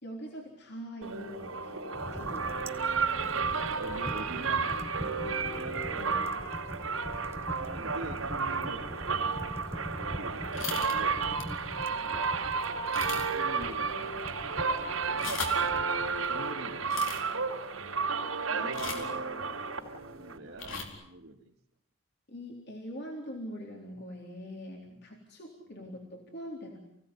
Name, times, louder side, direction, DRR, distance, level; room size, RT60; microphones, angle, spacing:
voice 1, 0.0-1.8 2.1-2.5 6.0-6.5 18.5-18.8 22.3-26.8, equal, 50° left, 1 dB, 3.9 m, -43 dB
sound 1, 1.0-20.4, right 5 dB, 85° right, 4.1 m, -32 dB
sound 2, 1.9-16.5, equal, 10° right, 1.3 m, -43 dB
voice 2, 3.7-5.8 7.5-8.9 9.9-11.2 11.8-12.8 13.1-15.4 16.1-17.7 18.5-19.3 20.0-21.5 25.7-25.9, right 2 dB, 55° right, -5 dB, 2.8 m, -45 dB
sound 3, 10.5-11.0 11.4-11.6 12.0-12.1 12.9-13.5 13.8-13.9 15.0-15.7 16.8-17.2 18.7-19.1 20.5-20.9, left 4 dB, 65° left, 4.3 m, -37 dB
28.5 x 17.5 x 9.9 m, 0.76 s
head